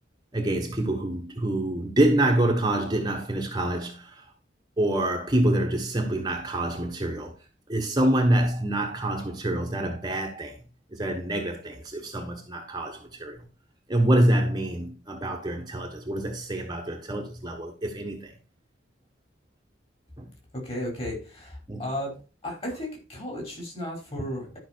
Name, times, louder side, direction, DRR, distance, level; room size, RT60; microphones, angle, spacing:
voice 1, 0.3-4.2 4.8-7.3 7.7-10.6 11.0-13.4 13.9-18.3 20.2-20.3 21.7-21.8, right 1 dB, 20° right, 1.4 m, -26 dB
voice 2, 20.6-22.1 22.4-24.6, left 1 dB, 30° left, 5.2 m, -34 dB
12.0 x 5.9 x 4.6 m
head